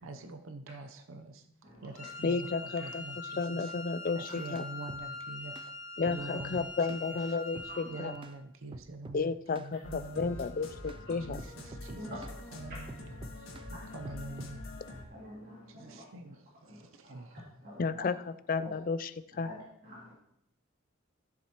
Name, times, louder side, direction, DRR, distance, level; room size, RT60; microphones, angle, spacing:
voice 1, 0.0-1.5 1.8-3.7 4.1-5.7 6.1-7.4 7.8-10.7 11.2-12.3 12.5-14.7 15.7-17.4, right 3 dB, 75° right, 7 dB, 0.7 m, -46 dB
Wind instrument woodwind instrument, 1.9-8.3, left 3 dB, 60° left, 2.6 m, -43 dB
voice 2, 2.2-3.0 3.4-4.6 6.0-8.1 9.1-11.4 17.8-18.1 18.5-19.1 19.4-19.5, left 4 dB, 40° left, 14 dB, 0.4 m, -32 dB
sound 1, 4.2-5.1 5.6-5.7 6.1-7.1 7.6-7.7 8.2-8.4 8.7-9.2 9.6-9.7 10.2-10.4 10.9-11.0 11.4-12.4 12.9-13.7 14.1-14.6, right 2 dB, 25° right, 0.4 m, -48 dB
sound 2, 9.8-15.0, left 2 dB, 80° left, 1.5 m, -45 dB
voice 3, 12.0-12.3 13.4-13.9 14.8-16.0 16.6-17.2 17.6-18.1 18.6-18.7 19.3-20.1, equal, 45° right, -6 dB, 2.4 m, -47 dB
13.5 x 7.2 x 2.9 m, 0.79 s
head